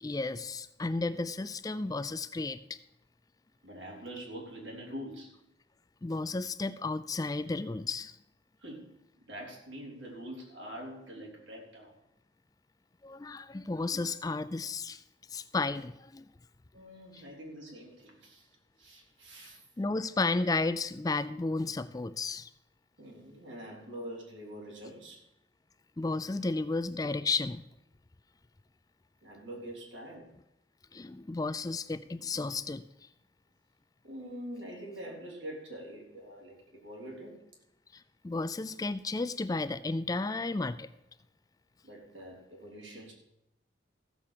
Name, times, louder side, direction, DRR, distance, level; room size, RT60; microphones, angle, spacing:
voice 1, 0.0-2.8 6.0-8.2 13.0-15.0 15.3-16.3 17.1-17.2 19.4-19.5 19.8-22.5 26.0-27.6 30.9-32.8 37.9-40.9, left 3 dB, 20° left, 13 dB, 0.3 m, -33 dB
voice 2, 3.6-5.4 8.6-9.0 9.3-11.9 16.7-18.5 18.8-19.6 23.0-25.2 29.2-30.3 34.0-37.3 41.8-43.1, equal, 80° right, -1 dB, 3.9 m, -44 dB
15.0 x 7.1 x 6.7 m, 0.85 s
head